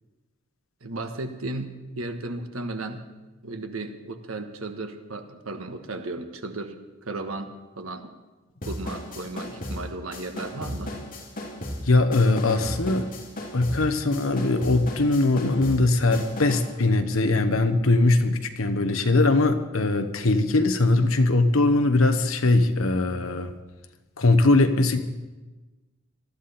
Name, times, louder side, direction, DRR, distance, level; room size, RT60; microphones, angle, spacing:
voice 1, 0.8-3.0 3.4-6.7 7.0-8.1 8.7-10.9, right 2 dB, 75° right, 7 dB, 1.4 m, -35 dB
sound 1, 8.6-16.8, left 1 dB, 40° left, 2.8 m, -35 dB
voice 2, 11.8-13.1 13.5-23.5 24.2-25.0, left 2 dB, 70° left, 8 dB, 1.2 m, -21 dB
19.5 x 13.5 x 4.3 m, 1.2 s
head